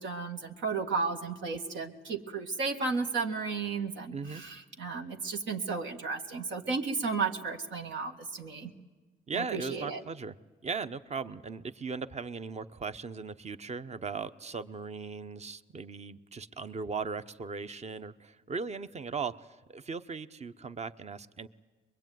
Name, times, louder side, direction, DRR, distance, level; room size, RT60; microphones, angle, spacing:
voice 1, 0.0-8.7 9.3-10.0, right 4 dB, 75° right, 3 dB, 1.8 m, -33 dB
voice 2, 4.1-4.4 9.3-10.4 10.6-21.5, right 5 dB, 35° right, 12 dB, 0.9 m, -38 dB
22.5 x 22.5 x 9.3 m, 1.3 s
cardioid pair, 90°, 20 cm